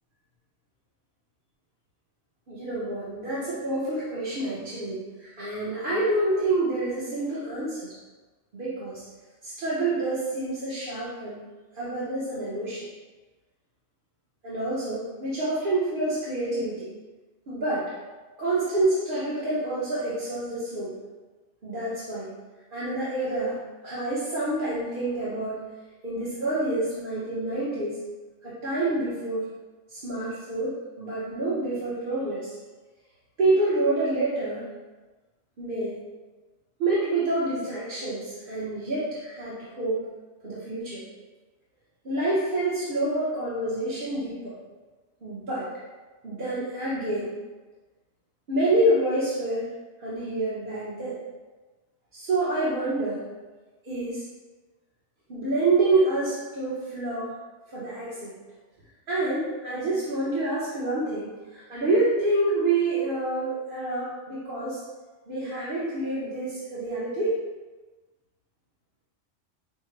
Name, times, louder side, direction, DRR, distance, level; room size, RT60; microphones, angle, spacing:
voice 1, 2.5-7.9 8.5-9.0 9.4-11.4 11.8-12.8 14.4-16.9 17.5-17.9 18.4-20.9 21.6-22.3 22.7-23.6 23.8-25.6 26.0-28.0 28.4-29.5 29.9-32.6 33.4-34.7 35.6-36.0 36.8-40.1 40.4-41.0 42.0-44.5 45.2-45.7 46.2-47.3 48.5-49.7 50.0-51.2 52.1-53.3 53.8-54.2 55.3-57.3 57.7-58.3 59.1-64.8 65.3-67.4, right 2 dB, 50° right, -10 dB, 1.0 m, -27 dB
5.7 x 2.1 x 3.2 m, 1.2 s
omnidirectional pair, 1.2 m